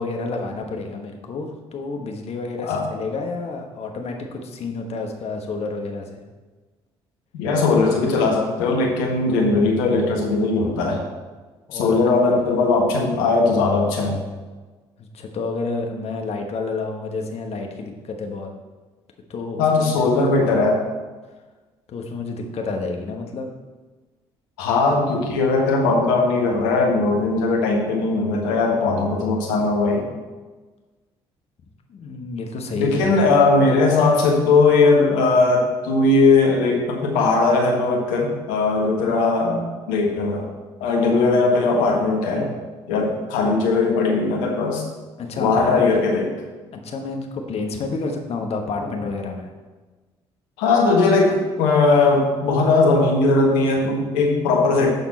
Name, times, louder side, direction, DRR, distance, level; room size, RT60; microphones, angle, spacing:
voice 1, 0.0-6.3 11.7-12.0 15.0-18.5 19.3-20.1 21.9-23.5 31.9-33.3 41.1-41.4 45.2-45.7 46.7-49.5, left 3 dB, 50° left, 3 dB, 1.3 m, -30 dB
voice 2, 7.3-11.0 11.7-14.2 19.6-20.8 24.6-30.0 32.7-40.5 40.8-42.6 42.9-44.8 45.4-46.3 48.8-48.9 50.6-54.9, left 3 dB, 75° left, 0 dB, 1.5 m, -19 dB
12.0 x 4.3 x 4.2 m, 1.3 s
hypercardioid pair, 50°, 13 cm